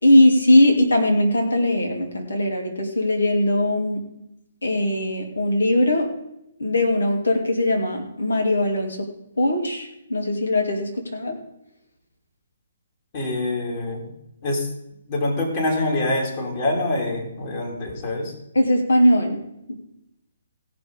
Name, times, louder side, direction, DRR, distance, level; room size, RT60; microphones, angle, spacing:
voice 1, 0.0-4.0 4.6-6.1 6.6-9.1 9.4-11.4 18.5-19.4, left 1 dB, 80° left, 2 dB, 2.8 m, -20 dB
voice 2, 13.1-14.1 14.4-14.7 15.1-18.3, left 2 dB, 40° left, -1 dB, 3.2 m, -25 dB
17.0 x 6.2 x 5.2 m, 0.82 s
figure-of-eight pair, 140°, 0 cm